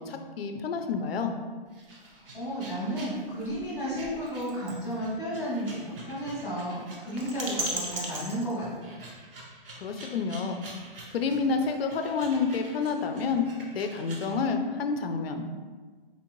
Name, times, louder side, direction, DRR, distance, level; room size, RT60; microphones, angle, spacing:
voice 1, 0.0-1.3 9.8-10.6 11.1-13.4 13.7-15.6, left 5 dB, 80° left, 6 dB, 0.5 m, -29 dB
sound 1, 1.7-14.3, right 2 dB, 70° right, 0.9 m, -41 dB
voice 2, 2.0-9.0, equal, 5° right, -12 dB, 0.6 m, -33 dB
4.4 x 2.6 x 3.0 m, 1.4 s
hypercardioid pair, 170°, 29 cm